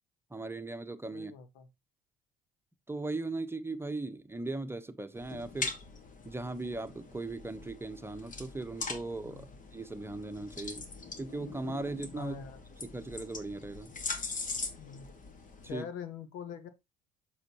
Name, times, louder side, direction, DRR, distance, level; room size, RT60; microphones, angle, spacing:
voice 1, 0.3-1.3 2.9-5.7 6.2-10.9 11.2-12.4 12.8-13.9 15.6-15.9, right 2 dB, 10° right, 1.1 m, -38 dB
voice 2, 1.1-1.7 9.2-9.4 12.2-12.6 14.7-15.1 15.6-16.7, left 8 dB, 75° left, 1.5 m, -43 dB
sound 1, 5.2-15.7, left 4 dB, 40° left, 1.9 m, -42 dB
7.9 x 6.5 x 3.0 m
hypercardioid pair, 65°, 19 cm